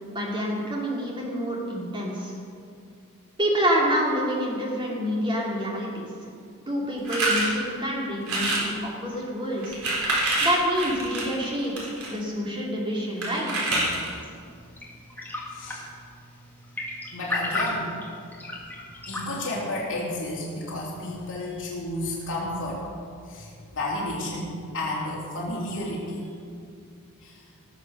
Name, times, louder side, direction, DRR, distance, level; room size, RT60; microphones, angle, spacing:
voice 1, 0.1-2.3 3.4-6.1 6.7-9.8 10.4-13.5, equal, 20° right, -3 dB, 2.8 m, -27 dB
sound 1, 7.0-7.5 8.2-8.7 9.6-12.1 13.2-14.2, right 2 dB, 70° right, 3.9 m, -26 dB
sound 2, 13.8-19.3, left 2 dB, 10° left, 2.1 m, -35 dB
voice 2, 15.5-15.8 17.1-17.8 19.1-22.8 23.3-26.3 27.2-27.4, left 1 dB, 60° left, -5 dB, 3.3 m, -32 dB
18.0 x 7.3 x 6.6 m, 2.4 s
head